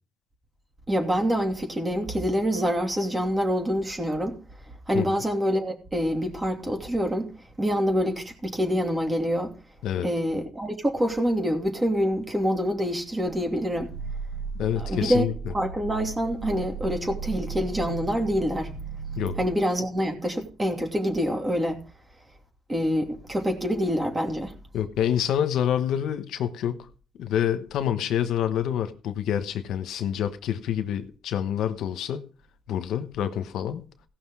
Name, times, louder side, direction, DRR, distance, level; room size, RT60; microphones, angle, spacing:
voice 1, 0.9-4.4 4.9-7.3 7.6-9.5 10.0-13.9 14.8-15.3 15.5-18.8 19.4-21.8 22.7-24.5, equal, 20° right, 2.6 m, -26 dB
Growling, 13.2-19.6, right 5 dB, 85° right, 2.6 m, -36 dB
voice 2, 14.6-15.5 19.2-19.3 24.7-26.9 27.1-32.3 32.7-33.8, left 10 dB, 80° left, 1.1 m, -27 dB
17.0 x 6.1 x 4.8 m
cardioid pair, 90°, 0 cm